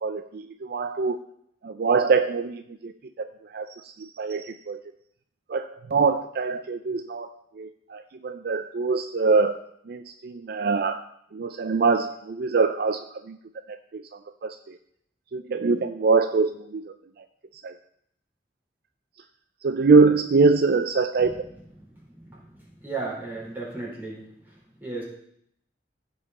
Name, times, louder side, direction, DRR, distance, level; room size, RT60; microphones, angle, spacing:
voice 1, 0.0-1.2 1.6-4.8 5.5-7.3 7.6-9.6 9.9-11.0 11.3-13.4 13.7-14.0 14.4-14.8 15.3-17.2 17.6-17.7 19.6-21.4, right 4 dB, 60° right, 9 dB, 0.5 m, -24 dB
voice 2, 22.8-24.2 24.8-25.0, right 3 dB, 10° right, -6 dB, 4.3 m, -33 dB
15.5 x 5.5 x 4.1 m, 0.70 s
head